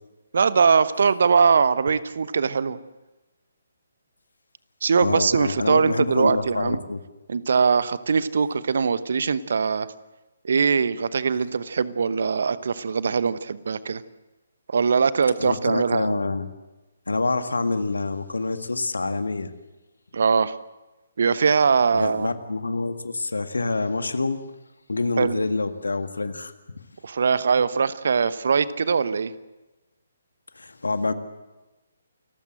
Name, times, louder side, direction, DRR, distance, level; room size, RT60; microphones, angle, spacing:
voice 1, 0.3-2.8 4.8-6.8 7.3-9.9 10.4-14.0 14.7-16.2 20.1-20.6 21.2-22.3 25.2-25.4 27.0-29.3, right 5 dB, 55° right, 15 dB, 1.0 m, -21 dB
voice 2, 5.0-7.0 15.4-16.5 17.1-19.5 21.9-24.4 24.9-26.5 30.6-31.1, left 3 dB, 70° left, 9 dB, 1.8 m, -26 dB
29.0 x 14.5 x 7.7 m, 1.1 s
figure-of-eight pair, 135°, 0 cm